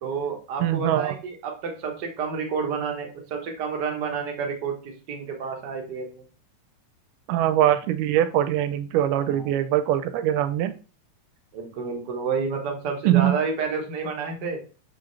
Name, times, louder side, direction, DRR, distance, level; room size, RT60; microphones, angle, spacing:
voice 1, 0.0-6.2 9.3-9.5 11.5-14.6, right 5 dB, 60° right, 2 dB, 1.1 m, -30 dB
voice 2, 0.6-1.2 7.3-10.7 13.1-13.4, right 12 dB, 80° right, 11 dB, 2.1 m, -22 dB
7.0 x 5.0 x 3.2 m, 0.36 s
omnidirectional pair, 3.8 m